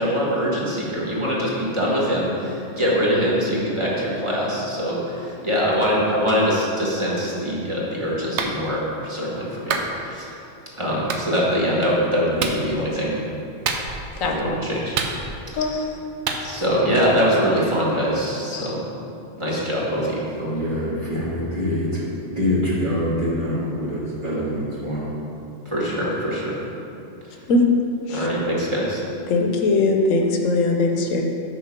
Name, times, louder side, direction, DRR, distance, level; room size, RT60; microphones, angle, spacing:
voice 1, 0.0-10.3 10.7-13.1 14.2-15.0 15.5-15.8 16.4-18.8 19.4-20.3 25.6-26.6 28.1-29.0, equal, 25° right, -6 dB, 1.4 m, -23 dB
Clapping, 8.4-8.6 9.7-9.9 11.1-11.2 12.4-12.6 13.7-14.1 15.0-15.5 16.3-16.4, right 5 dB, 65° right, 0.9 m, -26 dB
voice 2, 14.2-14.5 15.6-15.8 18.5-18.7 27.5-27.6 28.1-28.3 29.3-31.2, left 2 dB, 80° left, 2 dB, 1.1 m, -20 dB
voice 3, 20.4-21.9 22.4-24.6 24.8-25.0, left 1 dB, 40° right, -6 dB, 1.6 m, -24 dB
6.2 x 4.6 x 5.9 m, 2.7 s
omnidirectional pair, 1.3 m